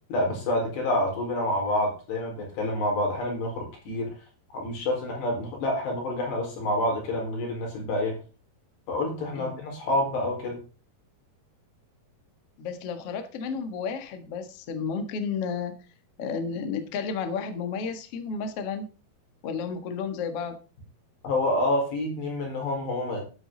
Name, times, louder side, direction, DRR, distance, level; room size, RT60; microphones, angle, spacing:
voice 1, 0.1-4.1 4.5-8.2 8.9-10.6 21.2-23.2, left 1 dB, 85° left, 1 dB, 6.6 m, -28 dB
voice 2, 12.6-15.8 16.2-18.9 19.4-20.6, left 5 dB, 50° left, 7 dB, 1.9 m, -32 dB
12.0 x 8.9 x 3.9 m, 0.33 s
omnidirectional pair, 4.8 m